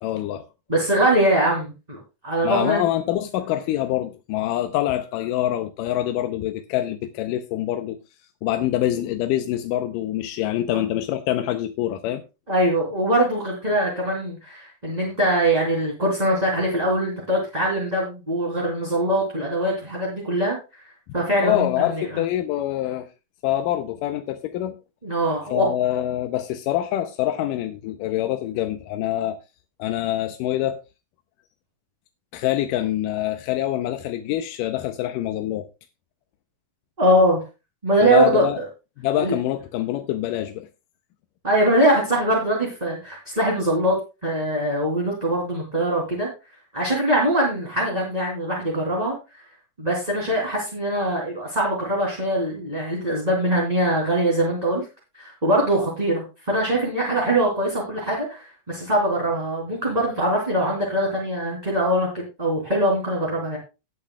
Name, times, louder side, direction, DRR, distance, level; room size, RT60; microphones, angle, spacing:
voice 1, 0.0-0.4 2.4-8.0 8.4-12.2 21.4-23.1 23.4-24.8 25.5-29.4 29.8-30.8 32.3-35.7 38.0-38.6 39.0-40.7, left 13 dB, 90° left, 2.3 m, -25 dB
voice 2, 0.7-2.8 10.7-10.8 12.5-20.8 21.1-22.2 25.0-25.7 37.0-37.4 37.8-38.6 39.2-39.3 41.4-44.0 44.2-46.3 46.7-49.1 49.8-54.8 55.1-63.6, right 1 dB, 10° right, 3.0 m, -22 dB
18.5 x 8.7 x 2.3 m
omnidirectional pair, 3.8 m